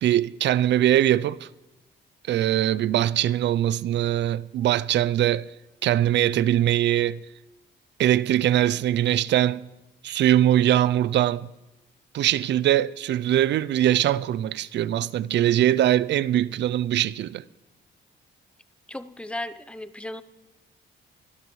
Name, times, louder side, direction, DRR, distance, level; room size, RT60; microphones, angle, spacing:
voice 1, 0.0-1.5 2.3-5.5 5.8-7.2 8.0-9.7 10.0-11.5 12.1-17.4, right 12 dB, 65° right, 0.4 m, -22 dB
voice 2, 18.9-20.2, left 1 dB, 5° left, 0.7 m, -35 dB
22.5 x 13.0 x 3.2 m
cardioid pair, 90°, 20 cm